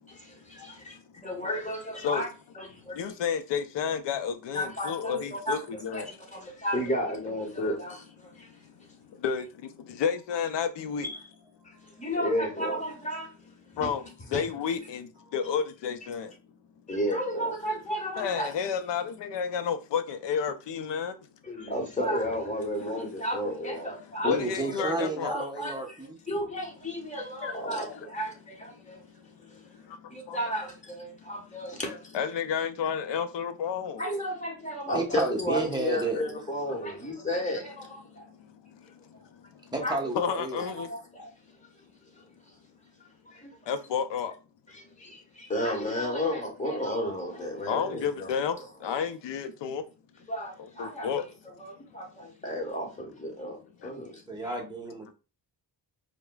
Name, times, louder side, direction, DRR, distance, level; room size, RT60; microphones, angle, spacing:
voice 1, 0.1-2.3 2.6-3.0 4.5-5.6 5.9-8.5 11.6-13.3 13.7-13.9 14.3-14.4 16.9-18.5 21.4-24.6 25.3-26.0 26.3-29.0 29.4-29.6 30.1-32.1 34.0-38.3 39.8-40.0 40.2-41.3 42.2-42.3 43.3-43.6 44.7-48.9 50.3-51.1 51.6-53.6 53.8-54.5, equal, 15° left, 1.2 m, -33 dB
voice 2, 0.6-1.0 2.0-2.3 2.9-6.1 7.6-7.8 8.4-11.1 13.7-16.3 18.2-21.2 22.9-23.0 24.2-25.3 27.4-28.0 28.8-28.9 29.2-30.4 31.8-34.0 36.1-36.2 36.7-36.8 37.5-37.6 38.1-39.7 40.1-40.9 43.7-44.3 47.6-49.8 50.6-51.3 53.8-53.9, left 7 dB, 75° left, 0.6 m, -32 dB
voice 3, 24.2-26.2 34.9-36.2 39.7-40.6 54.3-55.1, right 2 dB, 10° right, 0.9 m, -31 dB
4.8 x 2.1 x 2.3 m
cardioid pair, 85°, 43 cm